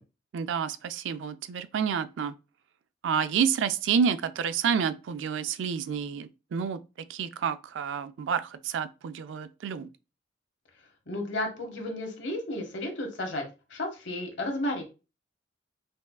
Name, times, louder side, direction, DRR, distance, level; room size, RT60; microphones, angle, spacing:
voice 1, 0.3-2.3 3.0-9.9, right 7 dB, 80° right, 0.3 m, -29 dB
voice 2, 11.1-13.4 13.7-14.8, left 1 dB, 75° left, 1.1 m, -32 dB
5.2 x 2.3 x 2.3 m
head